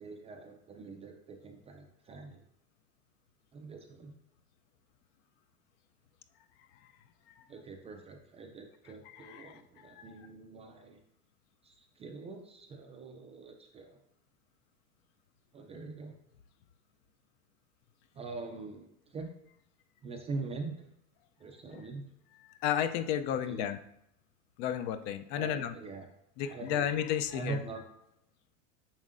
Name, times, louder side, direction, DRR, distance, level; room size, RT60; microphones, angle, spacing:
voice 1, 0.0-2.4 3.5-4.1 7.5-11.0 11.6-14.0 15.5-16.2 18.1-19.3 20.0-20.9 21.4-22.0 23.5-23.7 25.3-26.1 26.5-26.9 27.3-27.8, right 3 dB, 15° right, 3 dB, 0.3 m, -43 dB
voice 2, 9.1-10.1 21.7-21.8 22.6-23.8 24.6-25.7 26.4-27.6, left 10 dB, 50° left, 10 dB, 0.6 m, -33 dB
7.4 x 5.3 x 2.5 m, 0.78 s
supercardioid pair, 130°, 39 cm